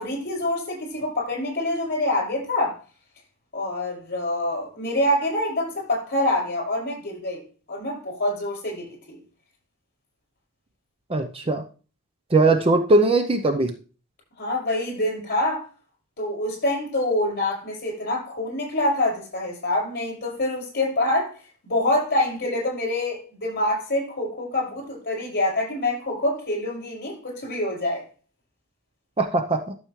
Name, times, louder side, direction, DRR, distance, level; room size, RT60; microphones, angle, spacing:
voice 1, 0.0-2.8 3.5-7.4 7.7-9.2 14.4-15.7 16.2-21.3 21.6-28.0, left 1 dB, 45° left, 5.7 m, -26 dB
voice 2, 11.1-11.6 12.3-13.7 29.2-29.8, right 2 dB, 25° right, 0.6 m, -20 dB
12.5 x 7.1 x 3.2 m
head